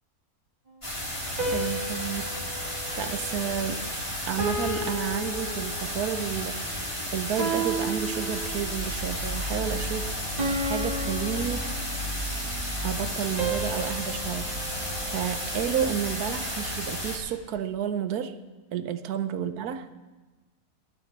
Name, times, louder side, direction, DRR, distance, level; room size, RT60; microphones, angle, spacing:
sound 1, 0.8-17.2, equal, 20° left, 2.5 m, -33 dB
sound 2, 1.4-3.9 4.4-6.1 7.4-8.9 10.4-12.3 13.4-15.7, right 1 dB, 25° right, 2.0 m, -34 dB
voice 1, 1.5-3.9 4.3-6.8 7.1-10.1 10.6-11.7 12.8-14.8 15.1-18.3 18.7-19.9, right 9 dB, 70° right, 10 dB, 1.3 m, -31 dB
sound 3, 8.4-16.1, equal, 40° right, 3.1 m, -37 dB
17.0 x 12.0 x 3.3 m, 1.3 s
omnidirectional pair, 1.7 m